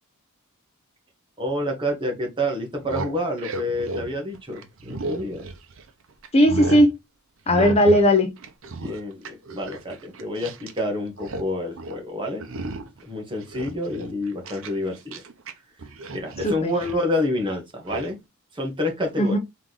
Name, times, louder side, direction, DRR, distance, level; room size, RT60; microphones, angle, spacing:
voice 1, 1.4-5.5 8.8-12.4 13.0-15.2 16.1-18.2 18.5-19.4, left 1 dB, 20° right, 1.2 m, -28 dB
sound 1, 2.7-5.9 6.2-6.9 7.5-8.1 8.4-10.8 11.1-11.5 11.8-12.0 12.4-13.0 13.4-15.5 15.8-17.0 17.9-18.1, right 2 dB, 65° right, 0.8 m, -34 dB
voice 2, 6.3-6.9 7.5-8.3 16.4-16.7 19.2-19.4, equal, 25° left, 0.6 m, -17 dB
3.7 x 3.2 x 3.9 m
head